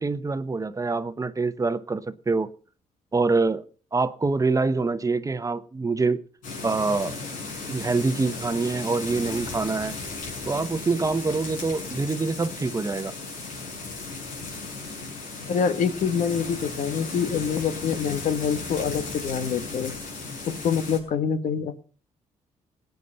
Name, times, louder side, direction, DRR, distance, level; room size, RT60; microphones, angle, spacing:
voice 1, 0.0-2.5 3.1-3.6 3.9-6.2 6.6-7.1 7.7-9.9 10.5-13.1, right 3 dB, 25° right, 12 dB, 1.0 m, -25 dB
sound 1, 6.4-21.0, left 3 dB, 85° left, 6.8 m, -36 dB
voice 2, 15.5-20.0 20.4-21.8, left 7 dB, 70° left, 10 dB, 1.3 m, -26 dB
18.5 x 9.3 x 5.5 m, 0.42 s
cardioid pair, 80°, 13 cm